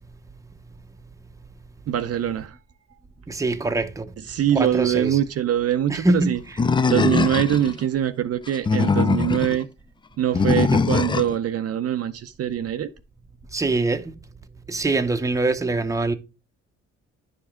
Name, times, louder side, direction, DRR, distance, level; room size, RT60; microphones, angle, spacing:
voice 1, 1.9-2.6 4.3-6.4 6.9-9.7 10.2-12.9, right 10 dB, 55° right, 0.6 m, -23 dB
voice 2, 3.3-4.1 4.5-5.2 5.9-6.6 10.7-10.8 13.5-14.1 14.7-16.1, right 2 dB, 10° right, 0.7 m, -23 dB
Animal, 6.6-7.7 8.5-9.6 10.3-11.4, left 4 dB, 15° left, 0.3 m, -21 dB
10.0 x 5.0 x 3.6 m
cardioid pair, 90°, 30 cm